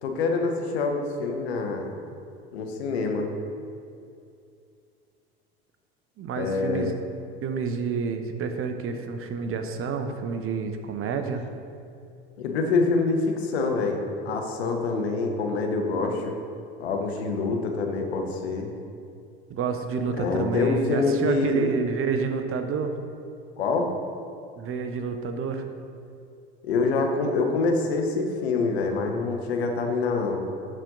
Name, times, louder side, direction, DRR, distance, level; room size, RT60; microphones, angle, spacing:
voice 1, 0.0-1.9 2.5-3.3 6.3-6.9 12.4-16.4 16.8-18.7 20.2-21.7 23.6-23.9 26.6-30.4, left 3 dB, 85° left, 3 dB, 1.1 m, -26 dB
voice 2, 6.2-6.9 7.4-11.4 19.5-23.0 24.6-25.6, right 5 dB, 45° right, 7 dB, 0.9 m, -29 dB
12.5 x 4.4 x 3.9 m, 2.5 s
hypercardioid pair, 80°, 31 cm